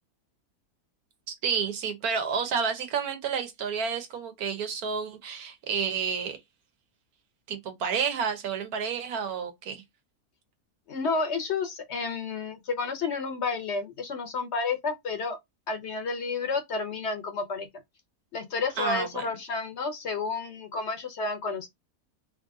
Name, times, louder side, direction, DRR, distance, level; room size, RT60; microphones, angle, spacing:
voice 1, 1.4-6.4 7.5-9.8 18.8-19.2, right 6 dB, 85° right, 1.4 m, -30 dB
voice 2, 10.9-15.4 15.7-17.7 18.3-21.7, left 4 dB, 55° left, 1.0 m, -31 dB
3.4 x 2.6 x 3.6 m
omnidirectional pair, 1.5 m